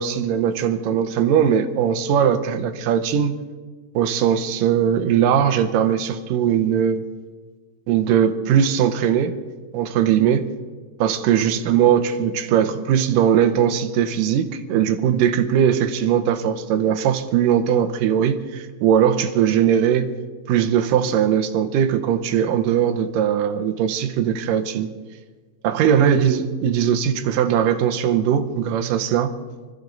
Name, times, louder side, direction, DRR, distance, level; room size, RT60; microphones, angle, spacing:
voice 1, 0.0-3.4 3.9-7.0 7.9-9.4 9.7-10.5 11.0-20.1 20.5-24.9 25.6-29.3, right 9 dB, 85° right, 7 dB, 2.6 m, -20 dB
25.0 x 14.5 x 3.9 m, 1.4 s
omnidirectional pair, 3.7 m